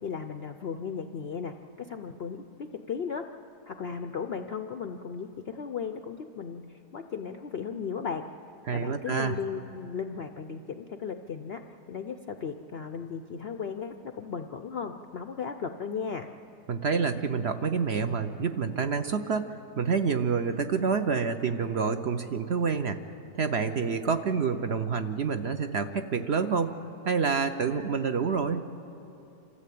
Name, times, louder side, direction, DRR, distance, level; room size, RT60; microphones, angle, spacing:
voice 1, 0.0-3.3 3.7-8.3 8.7-11.6 11.9-16.3, left 6 dB, 65° left, 7 dB, 0.6 m, -36 dB
voice 2, 8.7-9.4 16.7-28.6, right 5 dB, 55° right, 8 dB, 0.7 m, -28 dB
27.0 x 14.0 x 8.4 m, 2.9 s
omnidirectional pair, 1.8 m